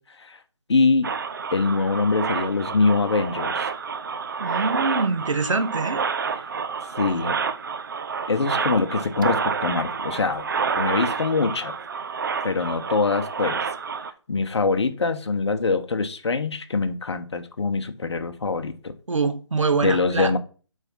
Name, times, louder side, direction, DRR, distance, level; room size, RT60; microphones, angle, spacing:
voice 1, 0.7-1.1 1.5-3.7 7.0-7.4 8.3-10.5 10.8-11.7 12.4-13.6 14.3-18.9 19.8-20.4, left 4 dB, 60° left, 1.2 m, -23 dB
sound 1, 1.0-14.1, right 5 dB, 40° right, 0.7 m, -29 dB
voice 2, 4.4-6.0 19.1-20.3, right 4 dB, 80° right, 1.3 m, -24 dB
8.0 x 3.7 x 5.9 m
figure-of-eight pair, 160°, 16 cm